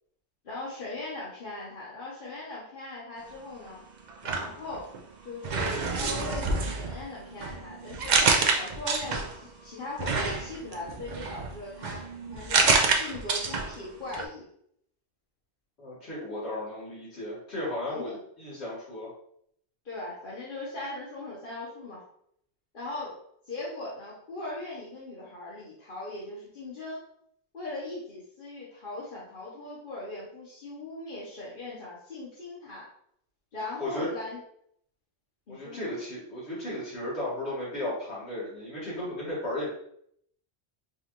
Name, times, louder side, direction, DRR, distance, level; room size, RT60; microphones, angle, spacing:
voice 1, 0.4-3.8 4.2-4.9 5.2-8.2 8.5-14.5 17.9-18.2 19.8-22.0 22.7-23.1 23.5-27.0 27.5-32.9 33.5-34.4 35.5-35.8, left 2 dB, 50° left, -7 dB, 1.1 m, -39 dB
sound 1, 4.1-5.0 5.4-9.5 10.0-13.8 14.1-14.2, right 4 dB, 50° right, 0.6 m, -28 dB
voice 2, 15.8-19.1 33.8-34.1 35.5-39.7, left 1 dB, 75° left, -9 dB, 1.9 m, -35 dB
4.9 x 2.5 x 2.9 m, 0.69 s
omnidirectional pair, 1.1 m